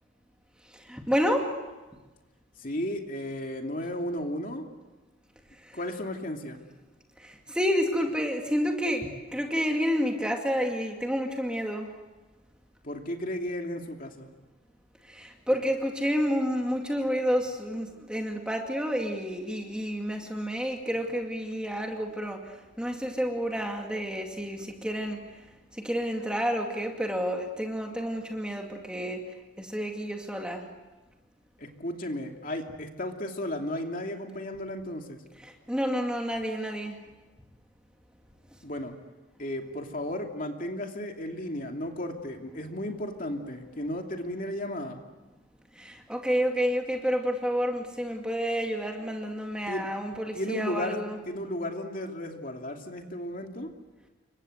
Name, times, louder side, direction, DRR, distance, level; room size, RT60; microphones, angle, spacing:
voice 1, 0.6-1.6 5.5-5.8 7.2-11.9 15.0-25.5 25.7-30.7 35.4-37.0 45.7-51.2, equal, 5° right, 2 dB, 2.3 m, -30 dB
voice 2, 2.6-4.7 5.7-6.6 12.8-14.3 15.5-15.6 31.6-35.2 38.6-38.9 39.4-45.0 49.7-49.9 50.3-51.0 51.3-53.7, left 1 dB, 40° left, 3 dB, 2.8 m, -34 dB
29.0 x 24.5 x 8.0 m, 1.2 s
head